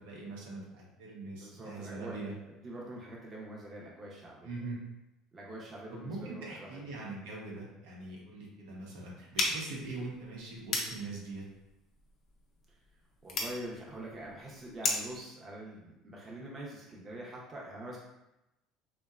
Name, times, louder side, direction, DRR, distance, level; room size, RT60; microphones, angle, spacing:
voice 1, 0.0-2.3 4.4-4.8 5.9-11.4, right 3 dB, 85° right, -3 dB, 0.7 m, -42 dB
voice 2, 1.3-4.5 5.3-6.9 13.2-18.0, right 1 dB, 25° right, -4 dB, 0.6 m, -45 dB
sound 1, 9.3-15.2, left 2 dB, 45° left, 0.5 m, -37 dB
2.7 x 2.1 x 2.3 m, 0.91 s
cardioid pair, 125°, 0 cm